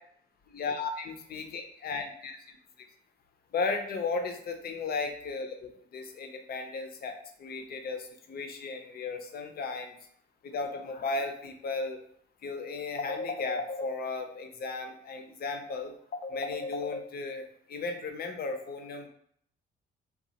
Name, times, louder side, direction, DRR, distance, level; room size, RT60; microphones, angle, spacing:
voice 1, 0.5-2.9 3.5-10.0 10.4-12.0 12.4-19.1, left 4 dB, 50° left, 5 dB, 0.6 m, -35 dB
2.8 x 2.4 x 4.0 m, 0.66 s
cardioid pair, 90°, 20 cm